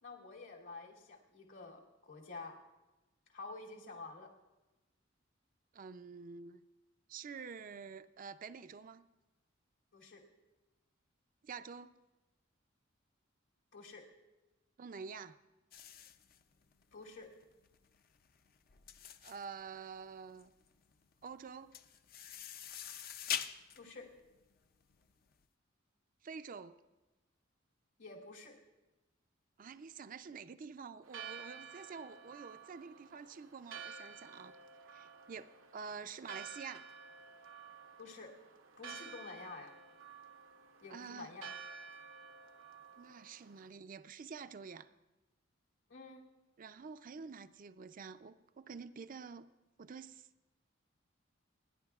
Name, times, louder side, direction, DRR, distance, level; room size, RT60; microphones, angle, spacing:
voice 1, 0.0-2.5 3.3-4.3 9.9-10.2 13.7-14.0 16.9-17.3 23.7-24.0 28.0-28.5 38.0-38.3 38.8-39.7 40.8-41.5 45.9-46.2, left 3 dB, 75° left, -2 dB, 2.8 m, -49 dB
voice 2, 5.7-6.7 7.1-9.1 11.4-11.9 14.8-15.4 19.2-20.5 21.2-21.8 26.2-26.8 29.6-34.6 34.9-36.9 40.9-41.3 43.0-44.9 46.6-49.5 49.8-50.3, right 5 dB, 45° right, 12 dB, 0.4 m, -48 dB
sound 1, 15.7-25.3, left 9 dB, 50° left, 0.5 m, -45 dB
Church bell, 31.0-43.7, right 6 dB, 90° right, 0.8 m, -52 dB
29.5 x 10.5 x 2.4 m, 1.1 s
head